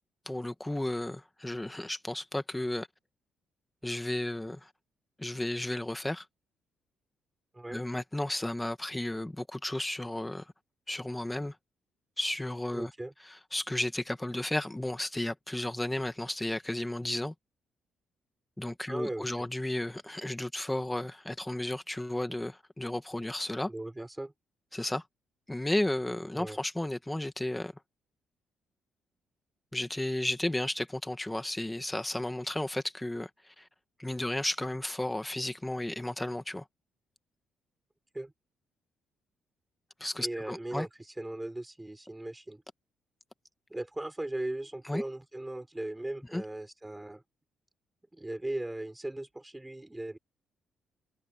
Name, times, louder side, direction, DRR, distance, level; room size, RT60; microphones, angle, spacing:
voice 1, 0.3-2.9 3.8-4.7 5.2-6.3 7.7-10.5 10.9-11.6 12.2-12.9 13.5-17.3 18.6-23.7 24.7-25.0 25.5-27.7 29.7-33.7 34.0-36.7 40.0-40.9 44.9-45.0 46.3-46.4, left 1 dB, 10° left, 2.0 m, -33 dB
voice 2, 12.7-13.1 18.9-19.5 23.7-24.3 26.3-26.6 38.1-38.3 40.2-40.9 41.2-42.6 43.7-47.2 48.1-50.2, right 1 dB, 10° right, 5.6 m, -38 dB
cardioid pair, 90°, 0 cm